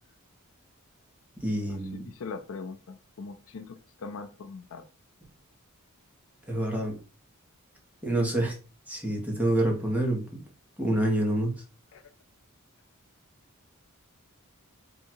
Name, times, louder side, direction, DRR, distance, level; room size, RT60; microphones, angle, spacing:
voice 1, 1.4-2.1 6.5-6.9 8.0-8.5 8.9-10.2 10.8-11.5, right 1 dB, 5° right, 1.3 m, -27 dB
voice 2, 1.9-4.9 11.9-12.0, left 4 dB, 65° left, 0.5 m, -41 dB
3.8 x 2.7 x 4.5 m
head